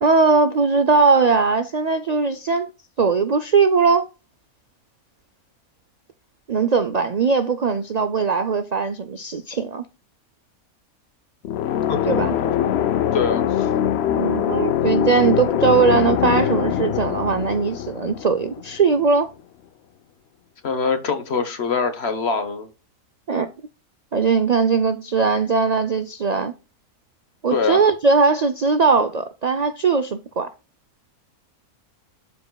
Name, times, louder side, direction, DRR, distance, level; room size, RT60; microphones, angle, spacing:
voice 1, 0.0-2.7 3.0-4.1 6.5-9.8 12.0-12.4 14.1-19.3 23.3-23.5 24.1-26.5 27.4-30.5, right 4 dB, 75° right, 0.3 m, -19 dB
sound 1, 11.4-19.1, left 10 dB, 65° left, 0.7 m, -23 dB
voice 2, 13.1-13.7 20.6-22.7 27.5-27.9, left 5 dB, 50° left, 1.3 m, -24 dB
12.5 x 5.2 x 2.3 m
omnidirectional pair, 1.5 m